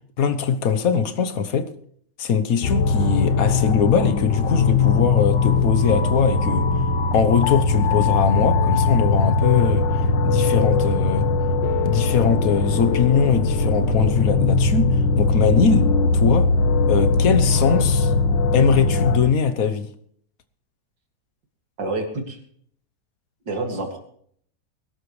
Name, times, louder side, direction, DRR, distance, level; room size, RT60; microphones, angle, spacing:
voice 1, 0.2-1.7 2.2-6.7 7.1-11.3 11.8-15.9 16.1-16.5 16.9-18.1 18.5-19.9, left 6 dB, 55° left, 9 dB, 1.3 m, -21 dB
sound 1, 2.6-19.2, left 4 dB, 80° left, 1.7 m, -20 dB
voice 2, 21.8-22.4 23.5-24.0, right 2 dB, 80° right, 3 dB, 3.0 m, -27 dB
21.0 x 12.5 x 3.2 m, 0.62 s
omnidirectional pair, 1.9 m